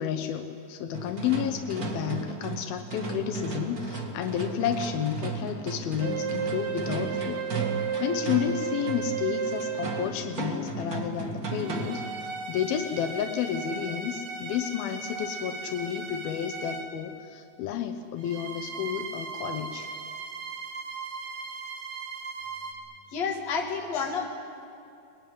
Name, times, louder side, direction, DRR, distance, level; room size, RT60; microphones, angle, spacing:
voice 1, 0.0-7.5 8.0-19.9, left 9 dB, 85° left, 6 dB, 2.8 m, -31 dB
sound 1, 0.9-12.2, right 4 dB, 35° right, 1.6 m, -35 dB
sound 2, 6.0-10.3 11.5-17.0 18.2-22.7, right 6 dB, 80° right, 4.1 m, -35 dB
voice 2, 23.1-24.3, left 5 dB, 50° left, 1 dB, 3.4 m, -29 dB
23.5 x 20.5 x 9.5 m, 2.5 s
omnidirectional pair, 4.2 m